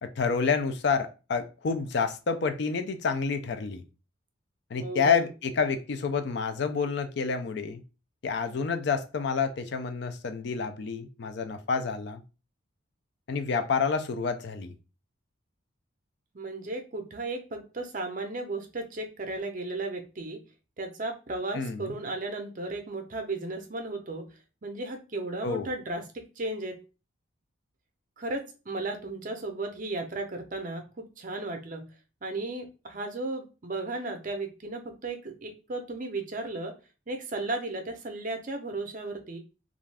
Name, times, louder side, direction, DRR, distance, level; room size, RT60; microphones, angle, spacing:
voice 1, 0.0-3.8 4.7-7.8 8.2-12.2 13.3-14.7 21.5-22.0 25.4-25.7, left 5 dB, 55° left, 8 dB, 0.4 m, -28 dB
voice 2, 4.8-5.3 16.3-20.4 20.8-24.2 24.6-26.8 28.2-31.9 32.2-36.7 37.1-39.4, right 2 dB, 40° right, 5 dB, 0.5 m, -35 dB
2.5 x 2.3 x 3.3 m, 0.32 s
head